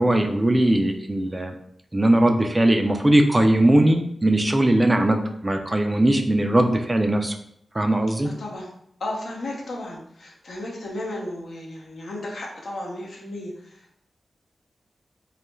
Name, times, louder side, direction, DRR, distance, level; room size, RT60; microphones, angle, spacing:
voice 1, 0.0-1.5 1.9-7.3 7.7-8.3, right 1 dB, 25° right, 4 dB, 0.4 m, -20 dB
voice 2, 8.2-8.7 9.0-14.0, left 1 dB, 80° left, -2 dB, 0.6 m, -34 dB
2.3 x 2.1 x 3.1 m, 0.72 s
cardioid pair, 45°, 0 cm